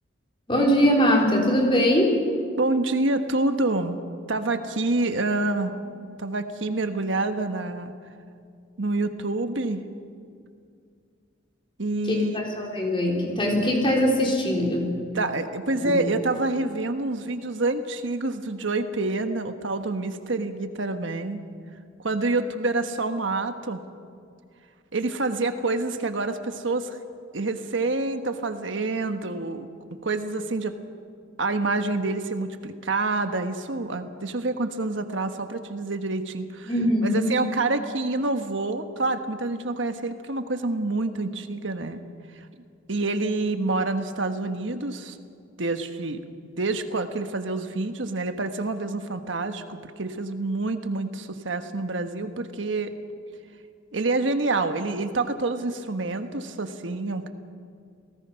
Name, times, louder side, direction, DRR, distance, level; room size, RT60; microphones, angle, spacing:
voice 1, 0.5-2.2 12.1-14.9 15.8-16.0 36.7-37.3, equal, 25° left, -1 dB, 4.0 m, -22 dB
voice 2, 2.6-4.0 4.3-5.8 6.2-8.0 8.8-9.8 11.8-12.4 15.1-21.4 22.0-23.8 24.9-27.0 27.3-30.7 31.4-36.7 37.0-42.0 42.9-45.2 45.6-52.9 53.9-57.3, right 2 dB, 75° right, 7 dB, 1.3 m, -27 dB
29.5 x 18.5 x 5.8 m, 2.3 s
head